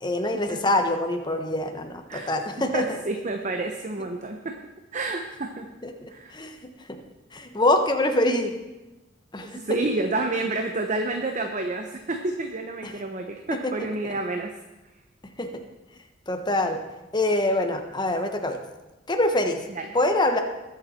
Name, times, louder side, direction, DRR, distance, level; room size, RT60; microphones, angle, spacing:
voice 1, 0.0-2.8 5.8-6.6 7.3-8.5 9.3-9.6 12.8-12.9 15.4-15.5 16.3-16.8 17.1-18.6 19.1-19.6 19.9-20.4, left 1 dB, 20° left, 5 dB, 1.2 m, -24 dB
voice 2, 2.7-4.6 4.9-5.7 6.1-6.4 9.4-14.5 19.7-19.9, right 2 dB, 40° right, 4 dB, 0.9 m, -29 dB
21.0 x 7.3 x 4.4 m, 1.1 s
head